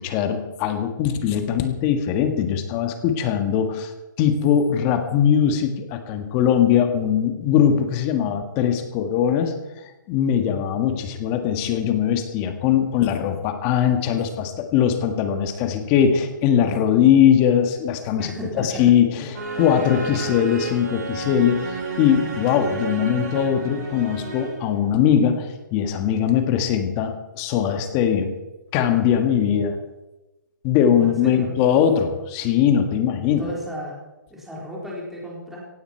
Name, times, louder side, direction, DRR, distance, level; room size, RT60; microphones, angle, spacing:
voice 1, 0.0-3.9 4.2-9.5 10.1-28.3 28.7-29.8 30.6-33.5, left 9 dB, 25° left, 7 dB, 1.6 m, -21 dB
voice 2, 18.2-18.8 31.0-31.5 33.2-34.0 34.3-35.6, equal, 5° right, -4 dB, 4.1 m, -34 dB
sound 1, 19.3-24.8, right 4 dB, 55° right, 7.7 m, -31 dB
16.5 x 16.0 x 4.5 m, 1.0 s
hypercardioid pair, 155°, 11 cm